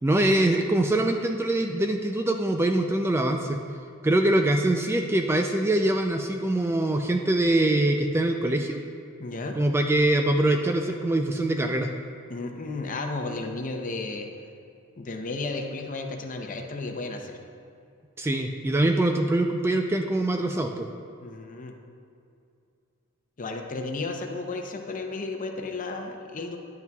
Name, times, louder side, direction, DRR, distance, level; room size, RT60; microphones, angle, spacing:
voice 1, 0.0-3.6 4.0-8.8 9.6-11.9 18.2-20.9, right 1 dB, 10° right, 4 dB, 0.3 m, -23 dB
voice 2, 9.2-9.6 12.3-14.3 15.0-17.4 21.2-21.7 23.4-26.6, left 3 dB, 40° left, 3 dB, 0.7 m, -33 dB
10.5 x 8.3 x 2.3 m, 2.5 s
head